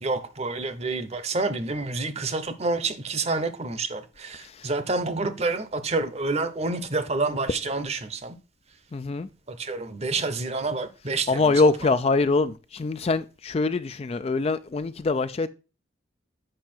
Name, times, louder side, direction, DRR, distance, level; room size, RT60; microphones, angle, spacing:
voice 1, 0.0-8.4 9.5-11.5 11.8-11.9, right 3 dB, 35° right, 0.8 m, -28 dB
voice 2, 8.9-9.3 11.3-15.5, left 3 dB, 30° left, 0.3 m, -24 dB
7.7 x 5.6 x 4.3 m
head